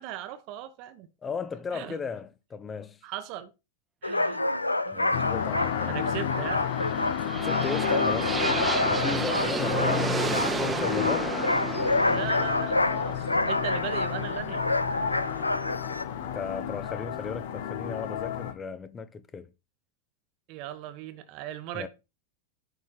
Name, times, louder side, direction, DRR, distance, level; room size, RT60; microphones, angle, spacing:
voice 1, 0.0-1.1 1.7-2.0 3.0-3.5 4.0-4.4 4.8-5.1 5.6-6.7 12.0-14.7 15.3-15.5 20.5-21.9, right 12 dB, 45° right, 1.0 m, -38 dB
voice 2, 1.2-3.0 4.9-6.0 7.4-8.5 8.9-11.4 16.2-19.5 21.7-21.9, left 5 dB, 20° left, 0.8 m, -36 dB
sound 1, 4.0-16.0, left 2 dB, 85° left, 0.6 m, -28 dB
sound 2, 5.1-18.5, left 10 dB, 55° left, 1.1 m, -32 dB
sound 3, 6.6-14.6, right 4 dB, 15° right, 1.0 m, -32 dB
11.0 x 4.3 x 5.7 m
figure-of-eight pair, 90°, 0 cm